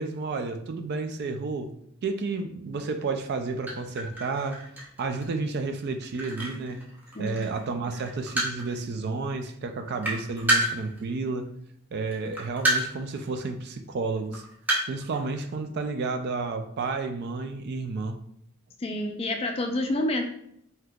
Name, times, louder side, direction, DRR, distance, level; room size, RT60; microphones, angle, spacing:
voice 1, 0.0-1.7 2.0-4.6 5.0-6.8 7.2-11.5 11.9-14.4 14.9-18.2, right 3 dB, 50° right, 7 dB, 0.3 m, -31 dB
sound 1, 3.7-7.6 7.9-8.8 9.4-9.5 9.8-11.5 12.1-13.1 13.4-13.5 14.1-15.3, right 1 dB, 10° right, 0.7 m, -29 dB
voice 2, 18.8-20.3, left 1 dB, 30° left, 4 dB, 0.4 m, -28 dB
3.5 x 2.8 x 2.3 m, 0.72 s
head